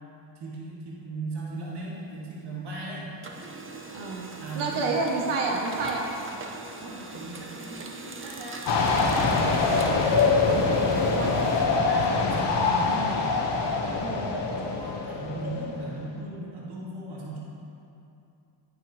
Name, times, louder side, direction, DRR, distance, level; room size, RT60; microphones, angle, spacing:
voice 1, 0.4-3.1 4.4-5.1 6.8-9.4 11.7-13.1 14.6-17.4, right 2 dB, 50° right, -5 dB, 2.4 m, -38 dB
Printer, 1.5-2.8 3.1-12.7, right 3 dB, 25° right, 0.8 m, -42 dB
voice 2, 3.9-4.2 4.5-6.1 10.4-11.4 14.0-14.4, right 3 dB, 70° right, -1 dB, 1.2 m, -30 dB
sound 1, 8.7-16.0, left 4 dB, 55° left, 1.5 m, -24 dB
9.9 x 9.5 x 3.3 m, 2.7 s
cardioid pair, 85°, 50 cm